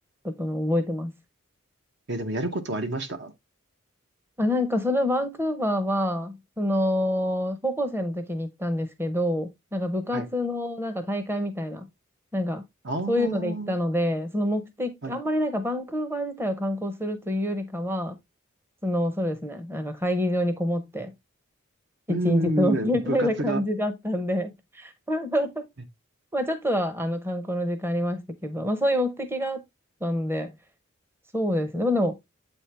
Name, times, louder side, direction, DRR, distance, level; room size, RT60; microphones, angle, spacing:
voice 1, 0.2-1.1 4.4-11.9 12.3-12.6 13.1-18.1 18.8-21.1 22.1-25.6 26.3-29.6 30.0-30.5 31.3-32.2, left 1 dB, 10° right, 0.7 m, -27 dB
voice 2, 2.1-3.3 10.1-10.3 12.8-13.7 15.0-15.2 22.1-23.6, right 1 dB, 55° right, 0.9 m, -29 dB
8.0 x 4.4 x 3.3 m
head